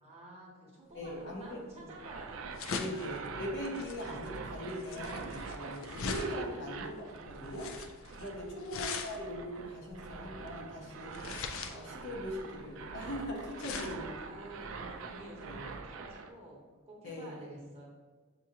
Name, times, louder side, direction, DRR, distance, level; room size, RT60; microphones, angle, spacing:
voice 1, 0.0-3.3 8.3-8.7 13.6-17.9, right 1 dB, 30° right, -4 dB, 0.9 m, -51 dB
voice 2, 0.9-1.9 2.8-7.7 8.2-14.3 15.4-15.6 17.0-17.5, equal, 55° left, -2 dB, 0.9 m, -41 dB
sound 1, 1.0-15.8, left 4 dB, 70° left, 0.4 m, -43 dB
sound 2, 1.9-16.3, right 4 dB, 65° right, 0.3 m, -45 dB
6.6 x 2.4 x 2.8 m, 1.4 s
head